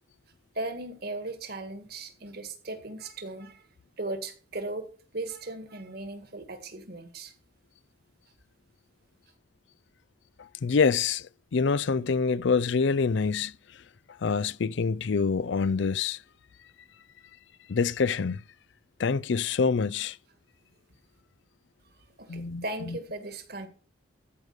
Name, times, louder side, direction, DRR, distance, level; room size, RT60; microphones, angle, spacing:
voice 1, 0.5-3.6 4.0-4.9 5.1-7.3 22.2-23.7, right 2 dB, 50° right, 1.8 m, -37 dB
voice 2, 10.4-13.5 14.2-16.2 17.7-18.4 19.0-20.2 22.3-23.0, left 5 dB, 60° left, 0.4 m, -26 dB
14.5 x 5.2 x 6.6 m
head